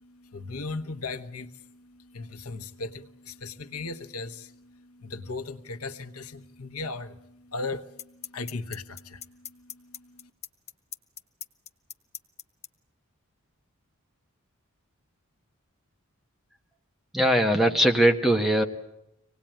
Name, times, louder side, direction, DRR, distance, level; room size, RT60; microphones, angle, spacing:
voice 1, 0.0-10.3, left 3 dB, 90° left, 11 dB, 1.1 m, -38 dB
sound 1, 6.9-7.0 8.0-12.7, left 9 dB, 30° left, 0.8 m, -39 dB
voice 2, 17.1-18.6, right 1 dB, ahead, 4 dB, 1.4 m, -21 dB
25.5 x 18.5 x 8.9 m, 0.85 s
head